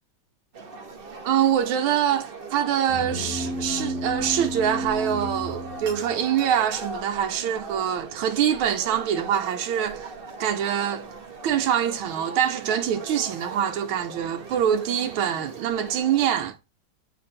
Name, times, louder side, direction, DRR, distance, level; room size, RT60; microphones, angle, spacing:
sound 1, 0.5-16.3, right 4 dB, 50° right, 0.6 m, -40 dB
voice 1, 1.2-10.1 10.4-11.1 11.4-16.6, right 9 dB, 85° right, 1.4 m, -24 dB
sound 2, 2.9-6.6, equal, 55° left, 1.0 m, -32 dB
7.9 x 3.3 x 4.2 m
omnidirectional pair, 2.2 m